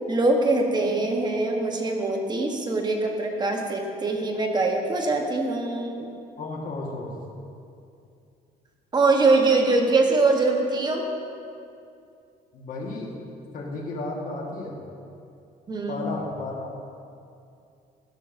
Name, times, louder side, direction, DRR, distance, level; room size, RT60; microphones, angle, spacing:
voice 1, 0.1-6.0 8.9-11.0 15.7-16.0, right 3 dB, 25° right, 2 dB, 1.1 m, -23 dB
voice 2, 6.4-7.1 12.5-13.1 13.5-14.8 15.9-16.7, left 2 dB, 55° left, -2 dB, 1.5 m, -33 dB
13.5 x 6.4 x 2.6 m, 2.5 s
cardioid pair, 110°, 17 cm